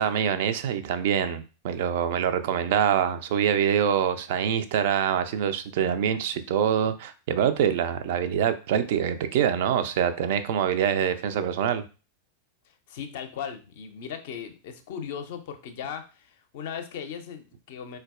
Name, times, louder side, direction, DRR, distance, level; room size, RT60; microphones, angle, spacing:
voice 1, 0.0-11.8, right 9 dB, 50° right, 10 dB, 0.3 m, -25 dB
voice 2, 12.7-18.0, left 7 dB, 55° left, 7 dB, 0.4 m, -38 dB
3.8 x 2.2 x 2.3 m, 0.33 s
figure-of-eight pair, 90°, 0 cm